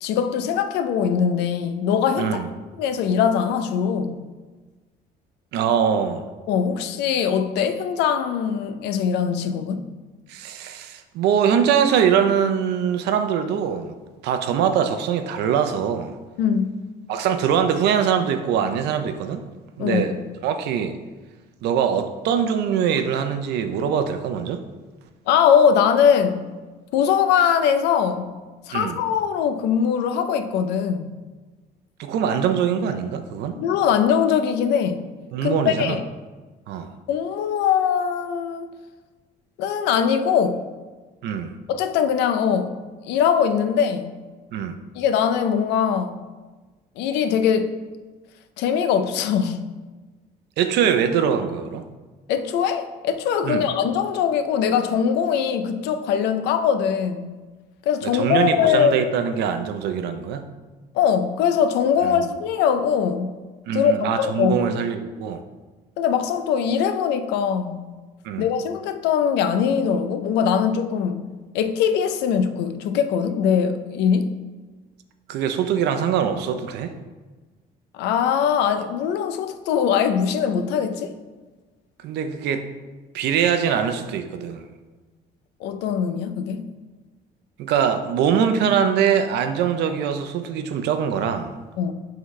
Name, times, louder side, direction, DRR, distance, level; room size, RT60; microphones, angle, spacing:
voice 1, 0.0-2.4 2.8-4.2 6.5-9.8 16.4-16.7 19.8-20.1 25.3-26.5 26.9-28.3 28.7-31.1 33.6-35.0 35.4-36.0 37.1-38.7 39.6-40.6 41.7-42.7 43.1-44.2 45.0-46.2 47.0-47.8 48.6-49.7 52.3-57.4 57.9-58.9 60.9-63.3 63.7-64.9 66.0-67.9 68.4-71.3 71.5-74.3 77.9-81.1 85.6-86.6 91.8-91.9, left 7 dB, 90° left, 9 dB, 0.6 m, -21 dB
voice 2, 5.5-6.2 10.3-13.9 14.2-16.2 17.1-19.4 19.8-20.2 20.4-21.0 21.6-24.6 28.7-29.0 32.0-33.6 35.3-36.0 36.7-36.9 41.2-41.5 44.5-44.8 50.6-51.9 53.4-53.7 58.0-60.5 62.0-62.3 63.7-65.4 68.2-68.5 75.3-76.9 82.0-82.7 83.1-84.6 87.6-91.5, right 8 dB, 80° right, 8 dB, 0.7 m, -23 dB
11.0 x 3.9 x 3.2 m, 1.3 s
cardioid pair, 110°, 17 cm